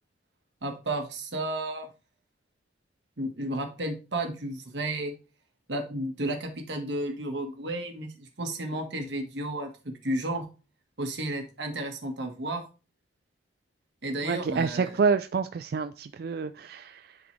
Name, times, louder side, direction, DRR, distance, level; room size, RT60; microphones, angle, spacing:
voice 1, 0.6-1.9 3.2-5.1 5.7-10.4 11.0-12.6 14.0-15.0, right 1 dB, 90° right, 1.5 m, -32 dB
voice 2, 14.2-17.2, right 5 dB, 60° right, 0.3 m, -28 dB
10.5 x 4.0 x 3.2 m
head